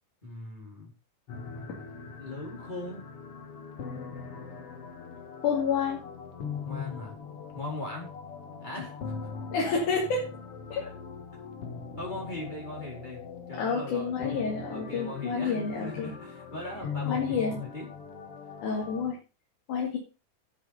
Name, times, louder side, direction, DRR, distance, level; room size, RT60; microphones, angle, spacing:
voice 1, 0.2-0.9 2.1-3.0 6.6-7.2 7.5-8.2 8.6-9.1 10.8-10.9 12.0-13.2 13.5-14.4 14.7-17.9, left 2 dB, 15° left, -1 dB, 4.3 m, -39 dB
sound 1, 1.3-19.1, left 5 dB, 50° left, 2.3 m, -41 dB
voice 2, 5.4-6.0 9.5-10.4 10.7-10.9 13.6-16.1 17.1-17.6 18.6-19.2 19.7-20.0, left 5 dB, 70° left, -1 dB, 3.7 m, -29 dB
12.0 x 8.1 x 5.2 m, 0.33 s
omnidirectional pair, 3.8 m